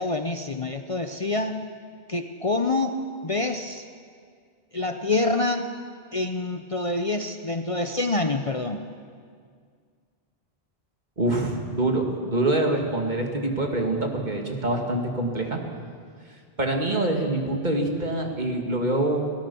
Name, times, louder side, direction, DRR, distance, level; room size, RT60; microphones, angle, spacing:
voice 1, 0.0-1.6 2.1-3.8 4.7-5.8 6.1-8.8, left 2 dB, 35° left, 7 dB, 0.8 m, -26 dB
voice 2, 11.2-15.6 16.6-19.2, right 1 dB, 45° right, 2 dB, 2.4 m, -25 dB
24.0 x 17.0 x 7.0 m, 2.1 s
omnidirectional pair, 1.1 m